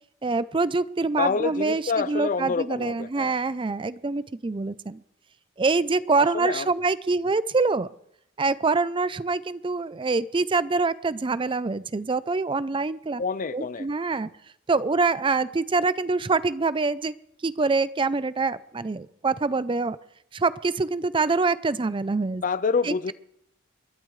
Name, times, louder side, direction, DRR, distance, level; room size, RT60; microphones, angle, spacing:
voice 1, 0.2-1.8 2.1-5.0 5.6-7.9 8.4-13.2 13.5-14.3 14.7-17.1 17.4-20.0 20.3-22.4 22.9-23.1, right 3 dB, 25° right, 0.5 m, -25 dB
voice 2, 1.2-3.4 6.2-6.7 13.2-13.9 22.4-23.1, left 5 dB, 45° left, 0.5 m, -27 dB
29.5 x 12.5 x 3.2 m
head